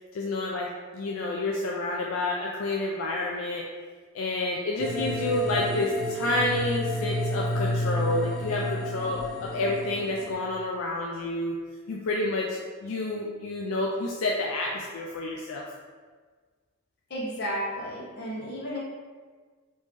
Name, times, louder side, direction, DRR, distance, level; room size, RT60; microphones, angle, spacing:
voice 1, 0.1-0.7 0.9-3.6 4.1-11.5 11.9-15.6, left 2 dB, 75° left, -2 dB, 0.4 m, -29 dB
sound 1, 4.8-10.3, equal, ahead, 0.4 m, -30 dB
voice 2, 17.1-18.8, equal, 50° left, -5 dB, 0.9 m, -33 dB
3.2 x 2.7 x 3.4 m, 1.5 s
head